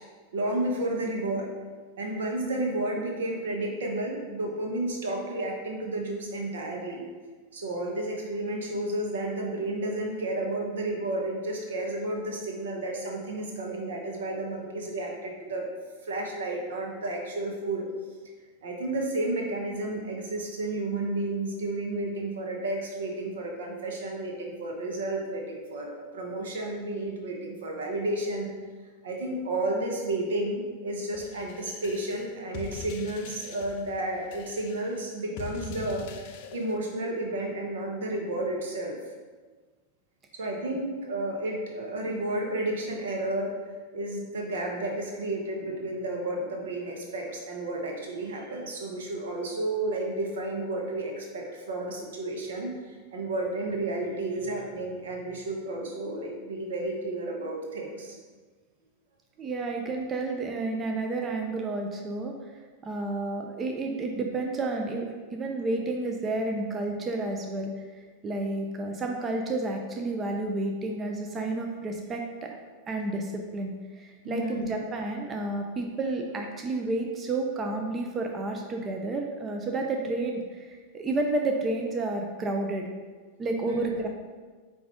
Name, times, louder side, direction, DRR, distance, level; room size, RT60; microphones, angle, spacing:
voice 1, 0.3-1.5 2.0-7.0 7.5-15.7 16.1-17.9 18.6-28.5 29.0-36.0 36.5-38.9 40.3-43.6 43.9-58.2 74.2-74.7 83.6-84.0, right 1 dB, 75° right, 0 dB, 0.8 m, -32 dB
sound 1, 31.1-36.8, left 6 dB, 60° left, 0.3 m, -43 dB
voice 2, 59.4-62.3 62.8-72.6 72.9-82.9 83.4-84.1, right 2 dB, 25° right, 2 dB, 0.4 m, -31 dB
4.6 x 2.6 x 3.7 m, 1.4 s
hypercardioid pair, 105°, 0 cm